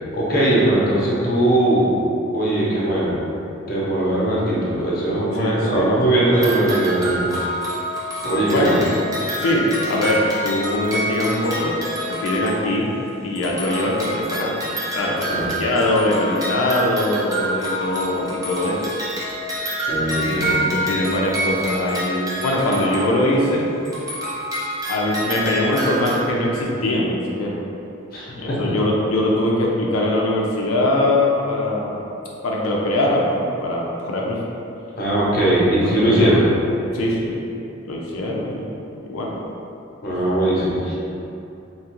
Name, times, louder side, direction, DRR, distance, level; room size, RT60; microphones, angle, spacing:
voice 1, 0.1-1.9 2.3-3.2 3.7-7.3 8.2-8.8 15.3-15.5 19.9-20.5 28.1-28.6 35.0-36.4 40.0-40.9, right 1 dB, 45° left, -6 dB, 0.6 m, -19 dB
voice 2, 5.3-6.3 8.1-8.2 8.5-8.8 9.4-11.8 12.1-12.9 13.2-14.6 14.9-18.8 20.2-23.7 24.9-27.6 28.4-32.0 32.4-34.4 35.8-36.4 36.9-37.5 37.9-38.7 39.0-39.4, left 1 dB, 85° left, -3 dB, 0.4 m, -22 dB
sound 1, 6.3-13.1 13.4-23.6 23.9-26.2, right 1 dB, 15° right, 0.4 m, -27 dB
2.9 x 2.4 x 2.9 m, 2.7 s
head